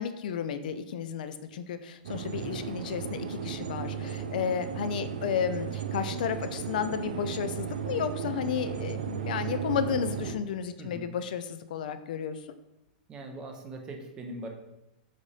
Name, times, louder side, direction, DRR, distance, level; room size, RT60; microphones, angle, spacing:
voice 1, 0.0-12.4, left 7 dB, 70° left, 11 dB, 0.3 m, -32 dB
sound 1, 2.0-10.3, right 7 dB, 90° right, 0.4 m, -35 dB
voice 2, 10.8-11.1 13.1-14.5, right 2 dB, 15° right, 2 dB, 0.5 m, -41 dB
4.0 x 3.6 x 3.3 m, 0.92 s
supercardioid pair, 165°, 5 cm